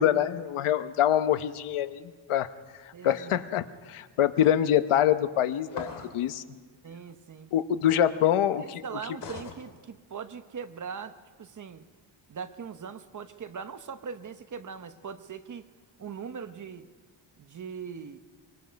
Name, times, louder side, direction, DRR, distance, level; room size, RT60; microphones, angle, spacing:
voice 1, 0.0-2.5 2.8-6.4 7.5-8.8, left 10 dB, 80° left, 12 dB, 1.0 m, -25 dB
voice 2, 2.9-3.4 6.8-7.5 8.2-8.3 8.6-11.1 11.4-11.8 12.3-15.7 16.0-16.9 17.4-18.2, right 6 dB, 40° right, 10 dB, 0.9 m, -40 dB
sound 1, 5.7-6.2 9.2-9.6, left 6 dB, 55° left, 2.4 m, -39 dB
24.5 x 23.5 x 5.2 m, 1.5 s
wide cardioid pair, 165°, 49 cm